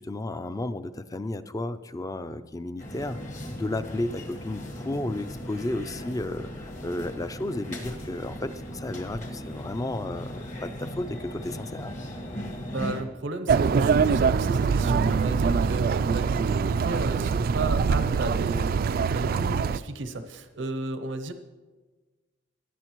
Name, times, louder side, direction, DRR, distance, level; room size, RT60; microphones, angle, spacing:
voice 1, 0.0-3.2 3.5-12.0, left 2 dB, 20° left, 12 dB, 0.4 m, -33 dB
sound 1, 2.8-13.0, equal, 45° left, 1.5 m, -38 dB
voice 2, 12.7-21.3, right 2 dB, 85° right, 9 dB, 0.7 m, -34 dB
sound 2, 13.5-19.8, right 5 dB, 55° right, 0.3 m, -23 dB
17.5 x 9.9 x 3.0 m, 1.3 s
head